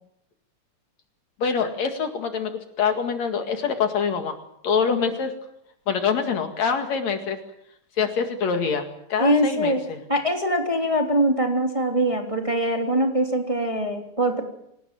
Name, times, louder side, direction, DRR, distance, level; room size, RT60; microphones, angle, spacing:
voice 1, 1.4-2.5 2.8-4.4 4.6-5.4 5.9-7.4 8.0-10.0, left 6 dB, 65° left, 6 dB, 3.3 m, -25 dB
voice 2, 9.2-9.8 10.1-14.4, right 1 dB, 10° right, 2 dB, 3.1 m, -22 dB
26.0 x 18.5 x 7.8 m, 0.76 s
omnidirectional pair, 3.3 m